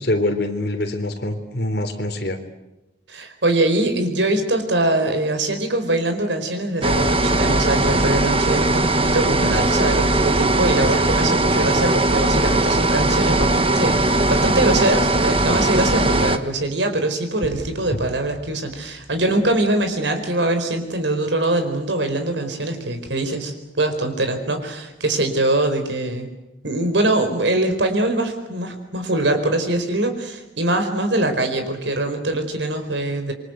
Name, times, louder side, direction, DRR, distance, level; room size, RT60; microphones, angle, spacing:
voice 1, 0.0-2.4, left 1 dB, 60° left, 5 dB, 3.7 m, -24 dB
voice 2, 3.1-26.3 26.6-33.3, right 2 dB, 90° right, 7 dB, 4.7 m, -22 dB
sound 1, 6.8-16.4, right 2 dB, 30° right, 1.4 m, -19 dB
sound 2, 17.4-20.2, equal, 5° right, 3.5 m, -40 dB
27.0 x 24.0 x 8.1 m, 0.98 s
head